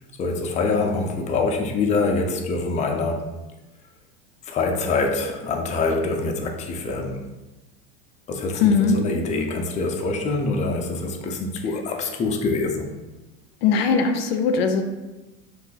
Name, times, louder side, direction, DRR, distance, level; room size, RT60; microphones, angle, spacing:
voice 1, 0.2-3.2 4.4-7.3 8.3-12.9, left 3 dB, 25° left, 2 dB, 0.4 m, -25 dB
voice 2, 8.6-9.0 13.6-14.8, left 5 dB, 80° left, 6 dB, 0.5 m, -19 dB
2.5 x 2.4 x 3.9 m, 1.1 s
hypercardioid pair, 100°, 30 cm